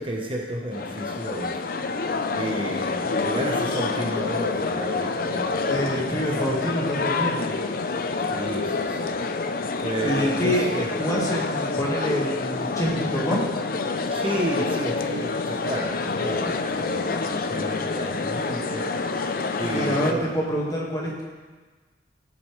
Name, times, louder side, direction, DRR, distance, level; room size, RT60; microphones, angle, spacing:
voice 1, 0.0-1.6 2.3-6.4 8.2-9.1 9.8-10.9 14.1-19.3 19.6-20.2, equal, 30° right, -1 dB, 1.0 m, -32 dB
sound 1, 0.7-20.1, left 4 dB, 55° left, 0.5 m, -27 dB
voice 2, 5.6-7.6 10.0-13.5 19.7-21.2, equal, 20° left, -3 dB, 1.8 m, -26 dB
16.5 x 6.9 x 3.3 m, 1.4 s
head